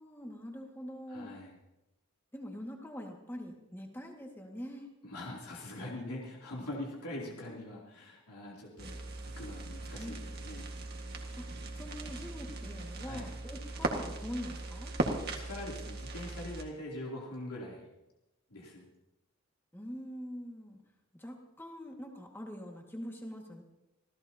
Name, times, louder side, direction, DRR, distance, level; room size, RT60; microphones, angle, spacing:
voice 1, 0.0-1.4 2.3-4.9 6.7-6.9 10.0-10.3 11.4-11.5 11.7-14.9 19.7-20.8 21.1-23.6, equal, 10° left, 1 dB, 1.9 m, -44 dB
voice 2, 1.1-1.6 5.0-9.0 9.4-10.7 13.0-13.3 15.2-17.9 18.5-18.8, left 1 dB, 85° left, -3 dB, 3.2 m, -43 dB
sound 1, 8.8-16.6, right 2 dB, 45° right, 1.8 m, -39 dB
26.0 x 16.0 x 2.9 m, 0.97 s
head